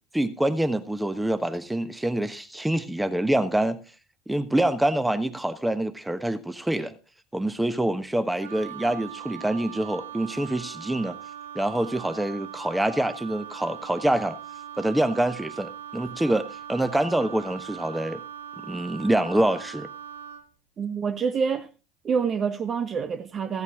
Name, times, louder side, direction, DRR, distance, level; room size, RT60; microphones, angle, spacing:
voice 1, 0.1-3.8 4.3-6.9 7.3-11.2 11.5-14.4 14.8-18.2 18.7-19.9, right 1 dB, 5° right, 1.1 m, -26 dB
Wind instrument woodwind instrument, 8.4-20.5, right 11 dB, 85° right, 0.7 m, -40 dB
voice 2, 20.8-21.7 22.0-23.6, right 6 dB, 40° right, 0.7 m, -27 dB
14.5 x 8.3 x 3.6 m
hypercardioid pair, 75°, 0 cm